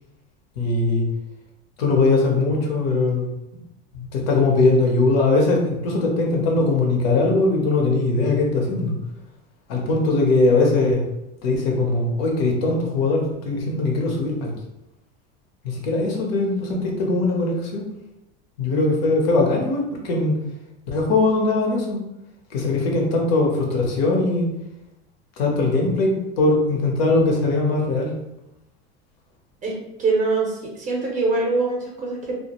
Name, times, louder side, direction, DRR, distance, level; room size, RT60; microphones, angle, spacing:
voice 1, 0.6-1.1 1.8-3.3 3.9-8.9 9.7-11.0 11.4-14.5 15.6-17.9 18.6-20.4 20.9-22.0 22.5-24.5 25.4-28.1, left 2 dB, 85° left, 0 dB, 0.8 m, -20 dB
voice 2, 29.6-32.3, right 3 dB, 25° right, -2 dB, 0.5 m, -23 dB
2.4 x 2.1 x 2.8 m, 0.90 s
supercardioid pair, 150°, 29 cm